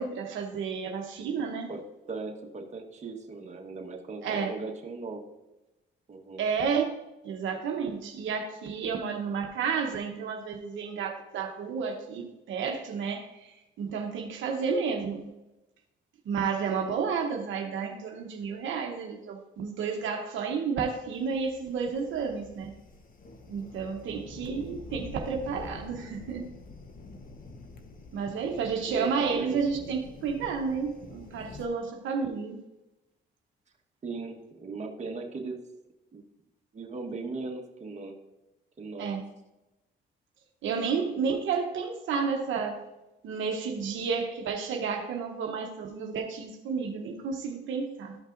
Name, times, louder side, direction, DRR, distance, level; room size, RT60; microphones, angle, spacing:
voice 1, 0.0-1.7 4.2-4.5 6.4-6.8 7.2-15.3 16.3-22.7 23.5-26.5 28.1-32.6 39.0-39.3 40.6-42.8 43.2-48.2, right 5 dB, 75° right, 3 dB, 0.9 m, -31 dB
voice 2, 1.7-5.2 6.1-6.5 28.9-29.6 34.0-35.6 36.1-36.2 36.7-38.1 38.8-39.2, right 3 dB, 35° right, 1 dB, 1.3 m, -38 dB
sound 1, 21.1-31.7, left 3 dB, 45° left, 1.0 m, -47 dB
13.0 x 5.3 x 2.5 m, 0.98 s
cardioid pair, 90°, 20 cm